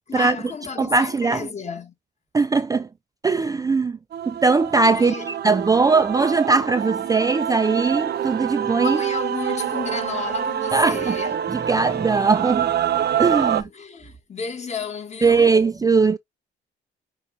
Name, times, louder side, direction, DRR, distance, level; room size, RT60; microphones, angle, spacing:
voice 1, 0.1-1.9 4.9-5.3 8.8-11.5 13.5-15.6, left 5 dB, 35° left, 1.6 m, -32 dB
voice 2, 0.8-1.5 2.3-2.9 3.2-4.0 4.3-5.2 5.4-9.0 10.7-11.2 11.5-12.7 13.2-13.6 15.2-16.2, right 4 dB, 20° right, 0.4 m, -20 dB
Male singing / Female singing / Musical instrument, 4.1-13.6, right 9 dB, 55° right, 0.7 m, -26 dB
6.6 x 2.5 x 3.2 m
cardioid pair, 90°, 20 cm